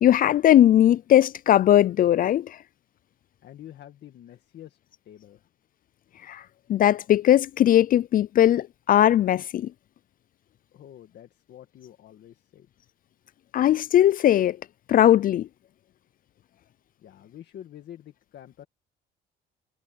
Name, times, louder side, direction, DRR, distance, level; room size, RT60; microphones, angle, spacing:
voice 1, 0.0-2.6 6.3-6.4 6.7-9.7 13.5-14.6 14.9-15.5, left 11 dB, 50° left, 0.4 m, -19 dB
voice 2, 3.4-4.8 5.0-5.4 10.7-12.7 17.0-18.7, left 11 dB, 65° left, 1.9 m, -47 dB
cardioid pair, 105°, 19 cm